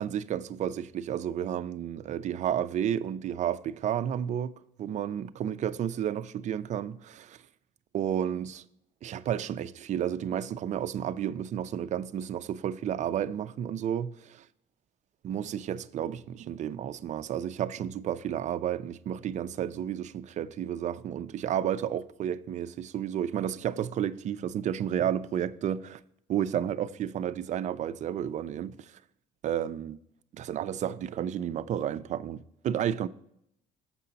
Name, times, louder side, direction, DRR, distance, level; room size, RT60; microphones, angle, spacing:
voice 1, 0.0-4.5 4.8-7.4 7.9-8.6 9.0-14.3 15.2-26.0 26.3-28.9 29.4-30.0 30.3-33.1, right 10 dB, 45° right, 0.4 m, -31 dB
7.5 x 5.6 x 3.9 m
cardioid pair, 110°, 17 cm